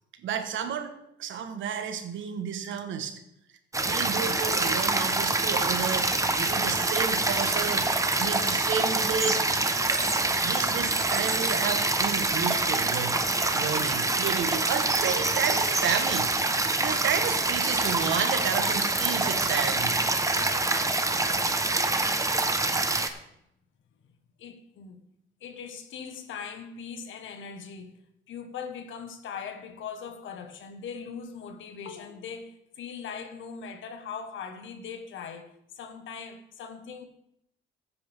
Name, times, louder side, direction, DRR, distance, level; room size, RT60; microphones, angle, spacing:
voice 1, 0.2-3.2 3.8-7.9 8.2-9.4 10.4-13.2 13.5-16.3 16.8-20.0, right 7 dB, 75° right, 1.3 m, -31 dB
sound 1, 3.7-23.1, right 2 dB, 15° right, 1.1 m, -26 dB
voice 2, 24.4-25.0 25.4-27.9 28.3-37.0, left 6 dB, 75° left, 1.5 m, -40 dB
15.0 x 8.6 x 3.6 m
cardioid pair, 90°, 20 cm